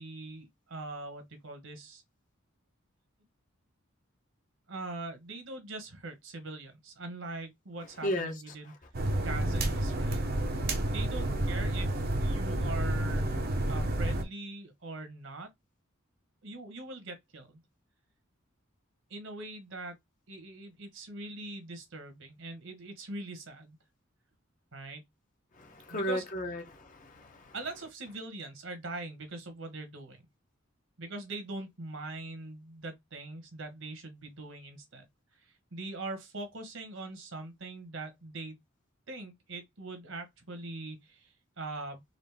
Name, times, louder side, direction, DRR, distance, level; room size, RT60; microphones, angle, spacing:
voice 1, 0.0-2.0 4.7-8.7 9.2-10.3 10.8-13.3 13.7-15.5 16.4-17.6 19.1-20.0 20.3-23.8 24.7-25.0 25.9-26.2 27.5-30.2 31.0-35.0 35.4-38.5 39.1-42.0, right 2 dB, 70° right, 1.2 m, -42 dB
voice 2, 8.0-8.3 25.6-27.5, equal, 40° left, 0.9 m, -34 dB
sound 1, 8.9-14.2, right 1 dB, 50° right, 0.7 m, -30 dB
4.1 x 2.5 x 3.4 m
head